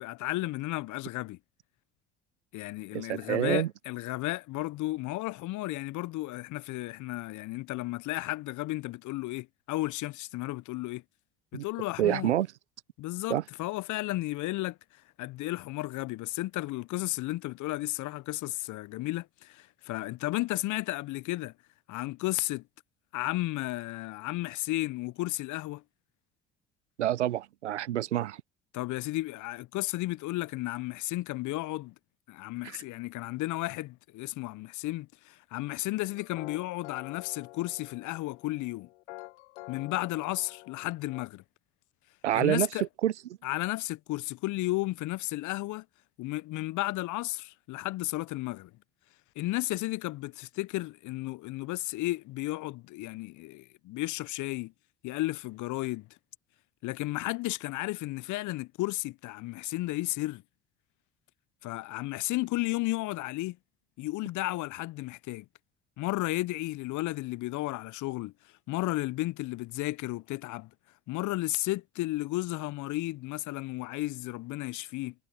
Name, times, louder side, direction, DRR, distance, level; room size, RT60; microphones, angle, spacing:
voice 1, 0.0-1.4 2.5-11.0 11.5-12.3 13.0-14.8 15.2-21.5 21.9-22.6 23.1-25.8 28.7-31.9 32.3-38.9 39.7-41.4 42.3-42.8 43.4-45.8 46.2-48.7 49.3-54.7 55.0-56.1 56.8-60.4 61.6-63.6 64.0-65.4 66.0-68.3 68.7-70.7 71.1-75.1, left 18 dB, 60° left, 1.2 m, -33 dB
voice 2, 2.9-3.7 11.5-11.6 12.0-12.5 13.3-13.4 27.0-28.4 42.2-42.7 43.0-43.1, right 12 dB, 85° right, 0.9 m, -27 dB
sound 1, 35.9-41.3, left 21 dB, 75° left, 2.2 m, -48 dB
figure-of-eight pair, 55°, 34 cm